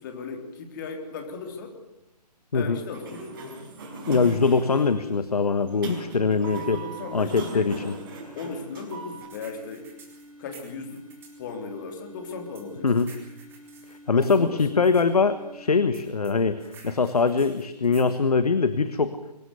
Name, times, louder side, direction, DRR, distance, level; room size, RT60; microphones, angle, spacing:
voice 1, 0.0-1.8 2.5-3.3 6.4-7.9 8.4-9.9 10.4-11.0 11.4-12.9 14.1-14.6, left 4 dB, 30° left, 4 dB, 3.4 m, -37 dB
Sliding door, 2.7-9.3, right 3 dB, 30° right, 5.5 m, -40 dB
voice 2, 4.1-6.8 7.1-7.9 12.8-13.1 13.9-19.2, left 4 dB, 65° left, 12 dB, 1.4 m, -23 dB
sound 1, 5.7-15.8, equal, 50° right, 4.6 m, -49 dB
sound 2, 8.9-11.4 12.3-15.0 15.9-18.1, right 5 dB, 10° right, 3.2 m, -51 dB
23.5 x 13.0 x 9.7 m, 0.90 s
figure-of-eight pair, 145°, 21 cm